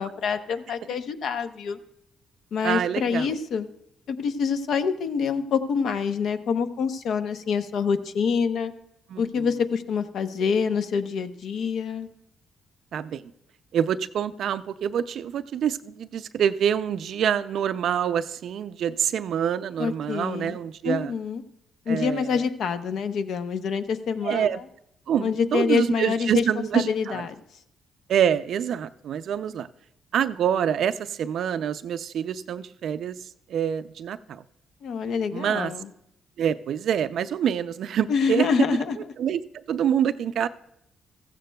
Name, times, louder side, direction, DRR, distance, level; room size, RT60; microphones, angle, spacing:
voice 1, 0.0-1.8 2.5-3.7 4.1-8.7 9.2-12.1 19.8-20.6 20.8-21.4 21.9-24.6 25.2-26.4 26.7-27.4 34.8-35.9 38.1-39.0, left 6 dB, 70° left, 9 dB, 0.8 m, -26 dB
voice 2, 2.6-3.4 9.1-9.5 12.9-13.2 13.7-21.1 21.9-22.4 24.2-24.6 25.1-27.2 28.1-29.7 30.1-33.2 33.5-34.4 35.3-35.7 36.4-38.5 39.2-39.4 39.7-40.5, right 9 dB, 70° right, 12 dB, 0.4 m, -26 dB
15.5 x 14.5 x 2.3 m, 0.80 s
cardioid pair, 90°, 0 cm